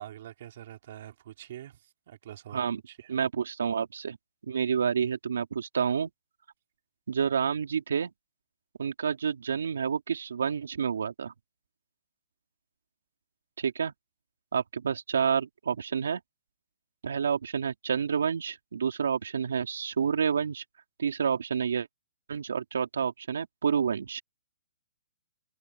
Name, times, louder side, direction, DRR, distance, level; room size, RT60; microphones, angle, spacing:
voice 1, 0.0-3.2, right 12 dB, 40° right, 3.8 m, -45 dB
voice 2, 3.1-4.2 4.5-6.1 7.1-8.1 8.8-11.3 13.6-13.9 14.5-16.2 17.0-20.6 21.0-21.9 22.3-24.2, right 7 dB, 80° right, 3.0 m, -29 dB
hypercardioid pair, 170°, 0 cm